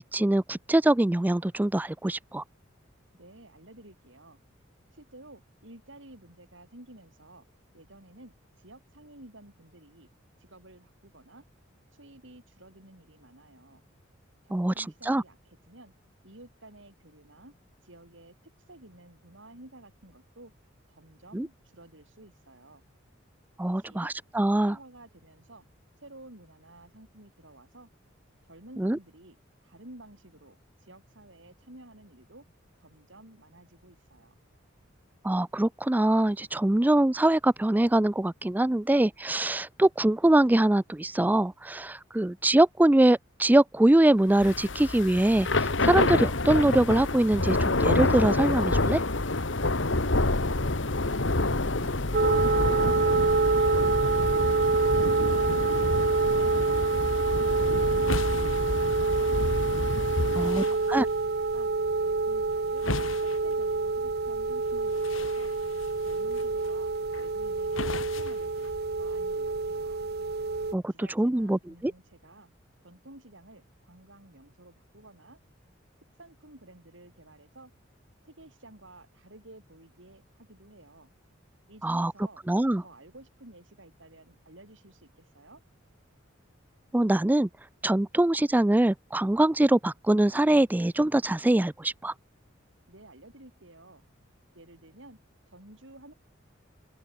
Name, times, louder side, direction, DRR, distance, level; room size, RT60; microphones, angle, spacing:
voice 1, 0.0-2.4 14.5-15.2 21.3-21.5 23.6-24.8 28.8-29.0 35.2-49.0 60.4-60.6 60.9-61.0 70.7-71.9 81.8-82.1 82.5-82.8 86.9-87.5 87.8-92.1, right 1 dB, 10° right, 0.4 m, -23 dB
voice 2, 3.1-4.4 4.9-7.5 7.7-10.1 10.4-11.4 11.9-13.8 14.4-15.9 16.2-17.5 17.8-20.5 20.9-22.8 23.6-24.1 24.5-25.7 26.0-27.9 28.4-29.4 29.6-32.5 32.8-34.4 51.1-54.0 54.3-54.9 55.2-59.6 60.2-61.7 61.9-62.9 63.2-65.5 66.0-70.0 70.9-72.5 72.8-75.4 76.1-77.7 78.2-81.1 81.7-82.4 82.8-85.6 92.9-94.0 94.5-95.2 95.5-96.1, right 1 dB, 70° right, 6.8 m, -52 dB
Thunder / Rain, 44.3-60.6, left 2 dB, 65° left, 1.8 m, -28 dB
sound 1, 52.1-70.7, right 4 dB, 55° right, 0.8 m, -27 dB
sound 2, 57.3-69.2, left 3 dB, 90° left, 1.6 m, -40 dB
head